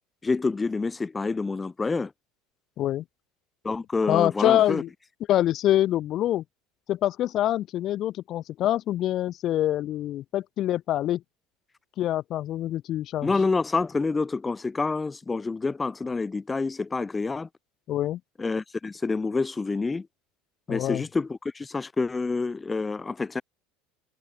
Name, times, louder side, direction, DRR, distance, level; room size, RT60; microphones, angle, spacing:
voice 1, 0.2-2.1 3.6-4.8 13.2-17.5 18.4-20.1 20.7-23.4, left 4 dB, 20° left, 3.3 m, -27 dB
voice 2, 4.1-4.9 5.3-6.4 6.9-11.2 12.0-13.3 17.9-18.2 20.7-21.0, left 13 dB, 45° left, 4.3 m, -25 dB
figure-of-eight pair, 70°, 0 cm